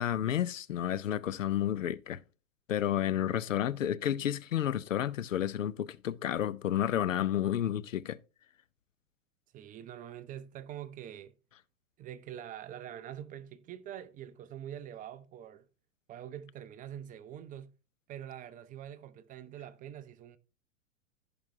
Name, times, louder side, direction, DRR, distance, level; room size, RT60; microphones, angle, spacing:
voice 1, 0.0-2.2 2.7-8.2, left 11 dB, 80° left, 0.6 m, -31 dB
voice 2, 9.5-11.3 12.0-15.7 16.1-17.7 18.1-20.4, right 10 dB, 20° right, 0.5 m, -45 dB
15.0 x 5.3 x 2.7 m
hypercardioid pair, 105°, 38 cm